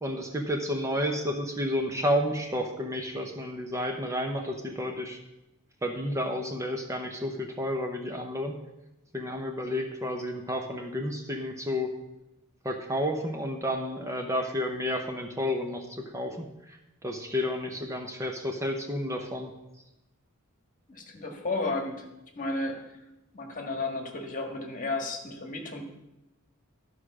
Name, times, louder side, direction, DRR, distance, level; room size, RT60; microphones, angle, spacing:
voice 1, 0.0-5.2 5.8-8.5 9.1-11.9 12.6-19.5, left 1 dB, 15° right, 3 dB, 0.8 m, -31 dB
voice 2, 20.9-22.0 22.3-22.7 23.3-25.8, left 2 dB, 40° left, 2 dB, 1.5 m, -33 dB
12.0 x 4.9 x 6.1 m, 0.94 s
head